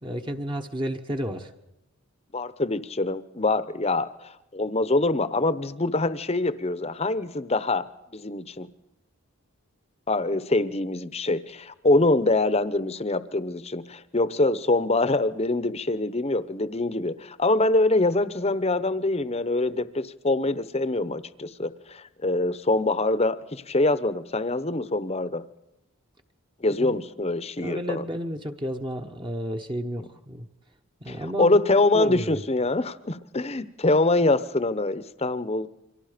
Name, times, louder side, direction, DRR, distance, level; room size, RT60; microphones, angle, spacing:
voice 1, 0.0-1.5 26.8-27.0 27.6-30.5 31.0-31.6 31.9-32.4, equal, 20° right, 4 dB, 1.1 m, -32 dB
voice 2, 2.3-4.1 4.5-8.7 10.1-25.4 26.6-28.0 31.1-35.7, left 2 dB, 25° left, 14 dB, 0.9 m, -24 dB
29.5 x 24.0 x 5.1 m, 0.90 s
head